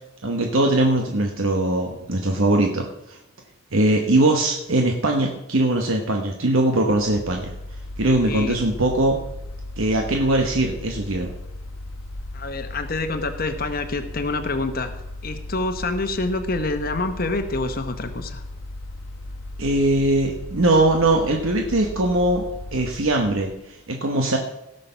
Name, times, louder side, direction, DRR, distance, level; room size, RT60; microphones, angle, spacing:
voice 1, 0.2-3.2 3.7-7.5 8.0-9.2 9.8-11.3 19.6-22.4 22.7-24.4, right 2 dB, 70° right, 2 dB, 1.1 m, -21 dB
Mechanical fan, 6.9-23.7, left 1 dB, 75° left, 1.3 m, -36 dB
voice 2, 8.2-8.6 12.3-14.9 15.2-18.4, left 2 dB, 45° left, 7 dB, 1.0 m, -27 dB
17.0 x 6.6 x 5.6 m, 0.88 s
head